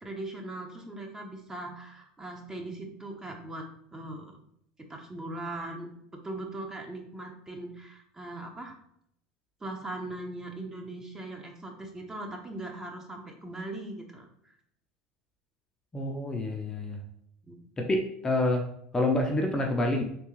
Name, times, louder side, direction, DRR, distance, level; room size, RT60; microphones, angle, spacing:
voice 1, 0.0-3.6 3.9-4.4 4.9-5.9 6.2-8.7 9.6-14.5 17.5-17.6, right 2 dB, 15° right, 2 dB, 0.8 m, -40 dB
voice 2, 15.9-17.0 17.8-20.0, left 2 dB, 20° left, 1 dB, 0.5 m, -28 dB
3.5 x 2.9 x 3.0 m, 0.72 s
supercardioid pair, 100°, 3 cm